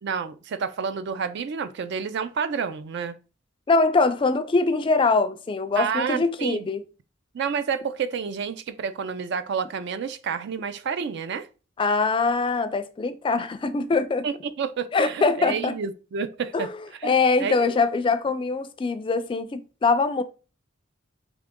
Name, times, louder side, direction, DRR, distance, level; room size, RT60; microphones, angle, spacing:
voice 1, 0.0-3.1 5.8-6.7 7.3-11.5 14.2-16.7 17.0-17.7, right 6 dB, 60° right, 0.4 m, -29 dB
voice 2, 3.7-6.8 11.8-14.3 14.9-15.7 16.5-16.8 17.0-20.2, left 3 dB, 25° left, 0.3 m, -23 dB
3.7 x 2.9 x 3.5 m
head